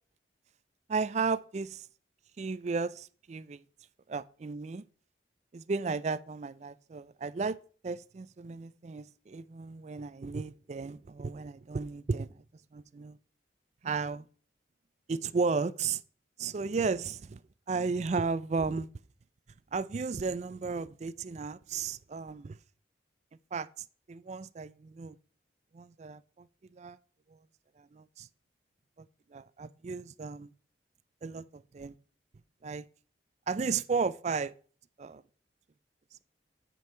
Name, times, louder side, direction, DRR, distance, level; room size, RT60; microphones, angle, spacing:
voice 1, 0.9-1.9 2.4-3.6 4.1-4.8 5.5-7.6 7.8-12.4 12.7-13.2 13.8-14.3 15.1-16.0 16.4-17.4 17.7-18.9 19.7-22.6 23.5-23.7 24.1-25.2 25.7-26.5 26.7-27.0 27.8-28.3 29.0-29.1 29.3-30.5 31.2-31.9 32.6-32.9 33.5-34.5 35.0-35.2, right 4 dB, 40° right, 0.4 m, -34 dB
9.1 x 5.4 x 4.5 m
head